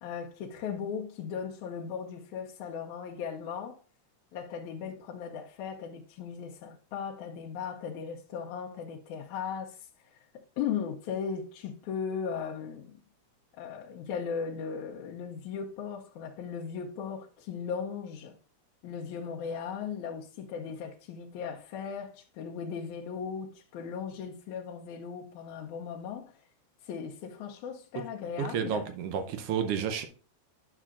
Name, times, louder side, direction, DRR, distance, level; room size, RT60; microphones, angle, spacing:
voice 1, 0.0-3.8 4.3-13.0 13.6-18.4 18.8-26.3 26.8-28.9, left 7 dB, 80° left, 2.1 m, -37 dB
voice 2, 28.4-30.1, right 8 dB, 70° right, 1.4 m, -31 dB
10.0 x 6.6 x 2.4 m
omnidirectional pair, 3.4 m